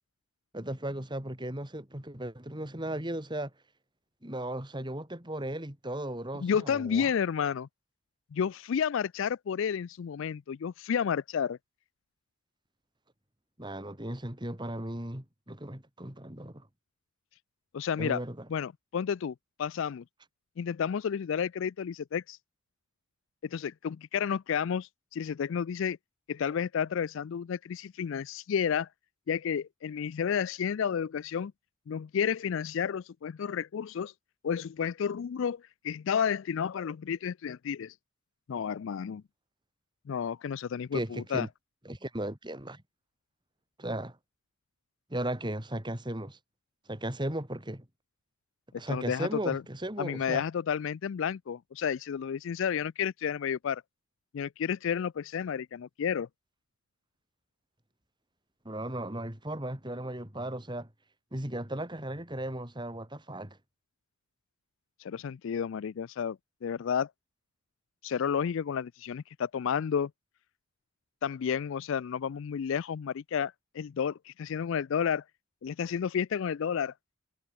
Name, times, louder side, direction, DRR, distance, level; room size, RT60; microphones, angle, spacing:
voice 1, 0.5-3.5 4.2-7.1 13.6-16.7 18.0-18.4 40.9-41.5 41.9-42.8 43.8-44.2 45.1-46.4 46.9-47.9 48.8-50.4 58.6-60.9 61.3-63.6, right 1 dB, 20° right, 2.6 m, -36 dB
voice 2, 6.4-7.7 8.3-11.6 17.7-18.2 18.5-20.0 20.6-22.4 23.4-26.0 26.3-28.9 29.3-31.5 31.9-34.1 34.4-37.9 38.5-39.2 40.1-41.5 48.9-49.6 50.0-53.8 54.3-56.3 65.0-67.1 68.0-70.1 71.2-75.2 75.6-76.9, left 7 dB, 60° left, 0.3 m, -31 dB
head